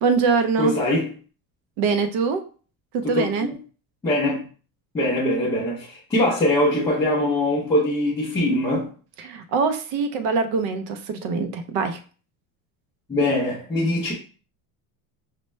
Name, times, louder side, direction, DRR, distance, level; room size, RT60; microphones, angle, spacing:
voice 1, 0.0-0.7 1.8-2.4 2.9-3.5 9.2-12.0, right 5 dB, 50° right, 8 dB, 0.5 m, -23 dB
voice 2, 0.6-1.1 3.0-3.5 4.0-4.4 4.9-8.9 13.1-14.1, left 1 dB, 10° left, -9 dB, 0.4 m, -22 dB
5.3 x 2.1 x 3.1 m, 0.39 s
cardioid pair, 180°, 43 cm